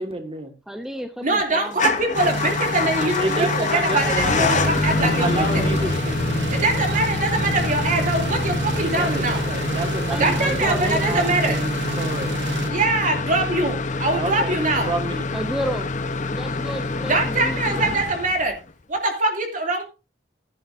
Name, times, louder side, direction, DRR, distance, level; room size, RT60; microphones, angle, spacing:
voice 1, 0.0-0.5 3.2-6.2 8.8-12.4 14.1-15.3, right 2 dB, 30° right, 5 dB, 1.9 m, -29 dB
voice 2, 0.7-1.8 10.1-11.3 15.3-15.9 16.3-17.9, equal, 5° right, 7 dB, 0.7 m, -31 dB
voice 3, 1.2-5.6 6.5-9.4 10.2-11.6 12.7-14.9 17.1-18.5 18.9-19.8, right 2 dB, 50° right, 3 dB, 2.8 m, -23 dB
Motor vehicle (road) / Engine starting / Idling, 1.7-18.7, left 3 dB, 45° left, 0.9 m, -26 dB
sound 1, 2.1-12.7, right 3 dB, 75° right, 0.9 m, -29 dB
13.0 x 11.0 x 2.6 m, 0.30 s
head